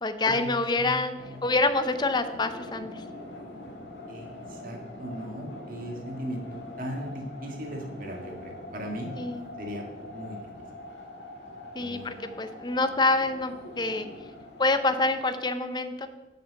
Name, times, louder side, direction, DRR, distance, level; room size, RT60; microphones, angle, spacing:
voice 1, 0.0-1.1 1.4-3.0 9.2-9.5 11.7-14.1 14.6-16.1, left 3 dB, 25° left, 10 dB, 0.6 m, -26 dB
sound 1, 1.2-15.2, left 1 dB, 80° left, 2.0 m, -43 dB
voice 2, 4.1-9.1 9.6-10.4 11.8-12.1, equal, 50° right, 1 dB, 1.9 m, -38 dB
6.9 x 5.9 x 7.6 m, 1.2 s
head